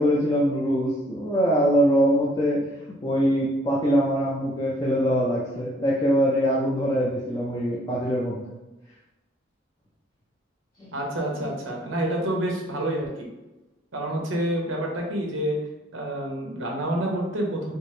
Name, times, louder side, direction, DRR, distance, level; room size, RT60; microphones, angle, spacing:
voice 1, 0.0-2.6 3.0-8.4 10.8-10.9 11.4-11.5, equal, 20° left, -5 dB, 0.4 m, -23 dB
voice 2, 10.9-13.3 13.9-15.6 15.9-17.7, right 1 dB, 90° right, -1 dB, 0.9 m, -28 dB
4.4 x 2.0 x 3.2 m, 1.0 s
head